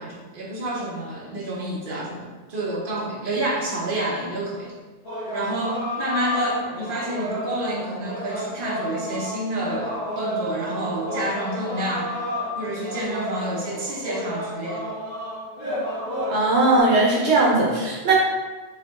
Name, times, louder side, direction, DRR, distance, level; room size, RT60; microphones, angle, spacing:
voice 1, 0.0-4.7 5.3-12.1 12.5-14.9, right 1 dB, 50° right, -4 dB, 1.2 m, -29 dB
sound 1, 5.0-16.8, left 1 dB, 65° left, 1.7 m, -31 dB
voice 2, 16.3-18.1, right 2 dB, 75° right, -3 dB, 1.1 m, -19 dB
4.8 x 3.0 x 3.6 m, 1.3 s
omnidirectional pair, 1.1 m